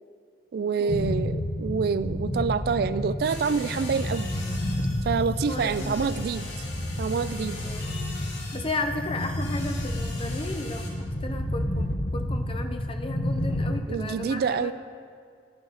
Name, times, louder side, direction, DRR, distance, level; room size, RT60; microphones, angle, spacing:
voice 1, 0.5-4.3 5.0-6.5 7.0-7.6 13.9-14.7, right 5 dB, 60° right, 15 dB, 0.3 m, -27 dB
sound 1, 0.9-13.8, left 1 dB, 55° left, 1.0 m, -30 dB
sound 2, 3.2-10.9, left 2 dB, 85° left, 2.5 m, -42 dB
voice 2, 5.5-6.3 7.6-7.9 8.5-14.7, left 2 dB, 30° left, 6 dB, 0.8 m, -34 dB
15.0 x 9.2 x 4.1 m, 2.2 s
head